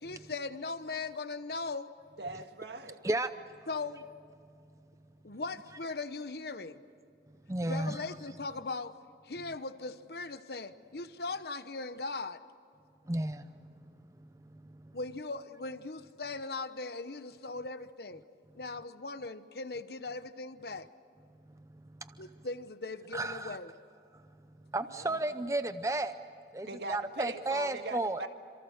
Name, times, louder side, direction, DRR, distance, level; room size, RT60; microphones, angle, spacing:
voice 1, 0.0-1.9 3.7-4.0 5.2-6.8 7.6-8.9 9.2-12.4 14.9-18.2 18.5-20.9 22.2-23.7, left 3 dB, 60° left, 12 dB, 1.0 m, -39 dB
voice 2, 2.2-3.0 24.9-25.2 26.6-28.3, right 2 dB, 70° right, 6 dB, 1.8 m, -40 dB
voice 3, 7.5-8.0 13.1-13.5 14.2-15.0 22.0-22.3 23.1-23.6 24.1-24.2 24.7-26.1 26.5-28.2, right 2 dB, 15° right, 11 dB, 0.6 m, -33 dB
28.0 x 26.5 x 6.6 m, 2.6 s
head